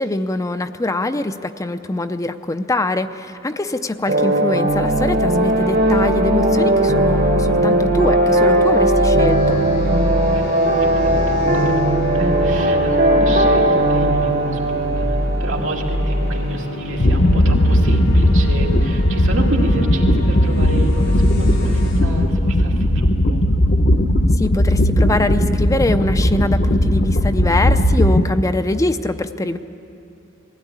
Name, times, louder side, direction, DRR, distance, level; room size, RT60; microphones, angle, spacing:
voice 1, 0.0-9.6 24.4-29.6, left 2 dB, 15° left, 9 dB, 0.5 m, -23 dB
sound 1, 4.1-16.9, right 1 dB, 50° right, 1.4 m, -18 dB
sound 2, 4.7-22.0, equal, 90° left, 4.8 m, -26 dB
voice 2, 10.8-23.4, right 1 dB, 85° right, -1 dB, 2.6 m, -28 dB
sound 3, 17.0-28.2, left 1 dB, 50° left, 0.9 m, -16 dB
20.5 x 16.5 x 9.7 m, 2.8 s
head